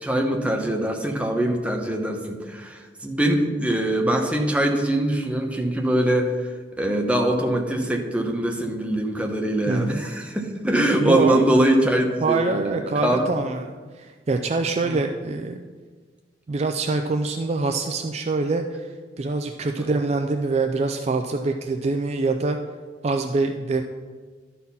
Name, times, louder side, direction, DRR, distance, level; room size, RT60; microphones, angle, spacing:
voice 1, 0.0-6.3 6.8-13.3 14.8-15.0, right 1 dB, 5° right, 2 dB, 0.9 m, -23 dB
voice 2, 9.7-10.0 11.0-11.4 12.2-15.6 16.5-22.6 23.0-23.8, right 3 dB, 35° right, 5 dB, 0.4 m, -25 dB
12.0 x 4.2 x 5.5 m, 1.5 s
head